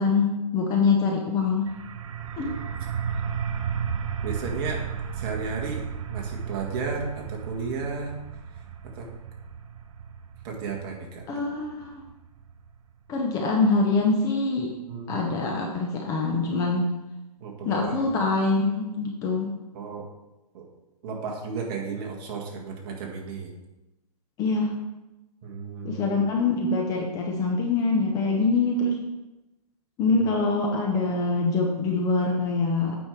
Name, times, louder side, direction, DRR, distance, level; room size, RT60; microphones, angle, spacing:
voice 1, 0.0-1.7 2.4-2.5 11.3-12.0 13.1-14.7 15.1-16.9 17.6-19.5 24.4-24.7 25.8-29.0 30.0-33.0, left 3 dB, 15° left, 1 dB, 0.7 m, -24 dB
sound 1, 1.7-13.1, right 7 dB, 50° right, 0.7 m, -34 dB
voice 2, 4.2-4.9 5.1-5.8 6.1-8.2 8.8-9.1 10.4-11.2 14.9-15.2 17.4-18.1 19.7-20.1 20.5-20.7 21.0-23.5 25.4-26.2 30.0-30.2, right 5 dB, 35° right, 0 dB, 1.8 m, -33 dB
8.6 x 5.5 x 4.6 m, 1.0 s
hypercardioid pair, 150°, 21 cm